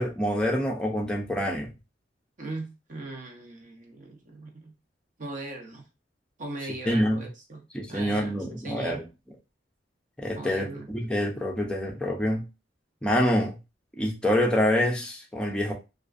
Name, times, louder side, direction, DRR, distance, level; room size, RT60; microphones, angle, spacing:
voice 1, 0.0-1.7 6.9-7.2 7.7-9.0 10.2-10.7 10.9-12.4 13.0-13.6 14.0-15.7, equal, 5° left, 0.4 m, -26 dB
voice 2, 2.4-4.8 5.2-5.9 6.4-9.0 10.3-10.9, right 2 dB, 45° right, 0.6 m, -39 dB
2.4 x 2.4 x 2.4 m
head